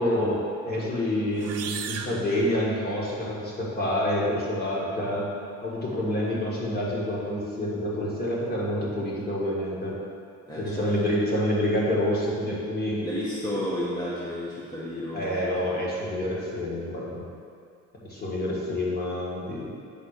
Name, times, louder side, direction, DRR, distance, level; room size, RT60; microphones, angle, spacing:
voice 1, 0.0-5.3 5.6-10.0 10.5-13.0 15.1-17.3 18.0-19.8, left 1 dB, 35° left, -5 dB, 1.7 m, -27 dB
sound 1, 1.3-3.2, right 7 dB, 55° right, 0.5 m, -37 dB
voice 2, 10.5-11.0 13.0-15.8, equal, 15° left, -8 dB, 1.0 m, -32 dB
8.8 x 4.0 x 6.5 m, 2.4 s
cardioid pair, 165°, 30 cm